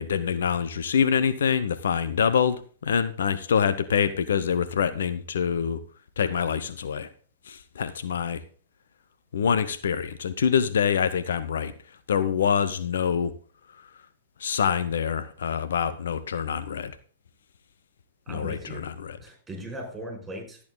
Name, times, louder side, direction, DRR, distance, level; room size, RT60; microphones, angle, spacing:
voice 1, 0.0-5.8 6.2-7.1 7.5-8.4 9.3-11.7 12.1-13.3 14.4-16.9 18.3-19.2, left 7 dB, 70° left, 13 dB, 0.8 m, -25 dB
voice 2, 18.3-18.9 19.2-20.6, right 1 dB, 10° right, 3 dB, 5.1 m, -38 dB
12.5 x 8.6 x 3.9 m, 0.42 s
figure-of-eight pair, 110°, 0 cm